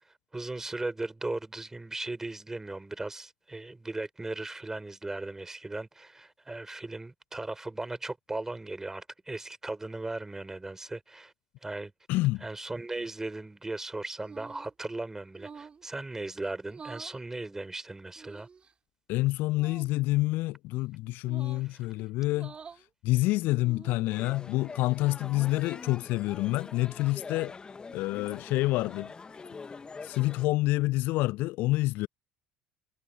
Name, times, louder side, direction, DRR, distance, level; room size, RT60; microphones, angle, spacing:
voice 1, 0.3-11.3 11.6-11.9 12.4-18.5 21.6-21.8, right 2 dB, 10° right, 5.0 m, -37 dB
voice 2, 12.1-12.4 19.1-22.5 23.0-27.5 27.9-29.1 30.0-32.1, left 19 dB, 55° left, 0.8 m, -28 dB
sound 1, 14.2-14.7 15.3-15.8 16.7-17.2 18.2-18.7 19.5-19.9 21.2-21.7 22.3-22.8 23.5-24.1, right 5 dB, 25° right, 2.8 m, -48 dB
sound 2, 24.1-30.5, left 4 dB, 20° left, 2.2 m, -44 dB
figure-of-eight pair, 60°, 4 cm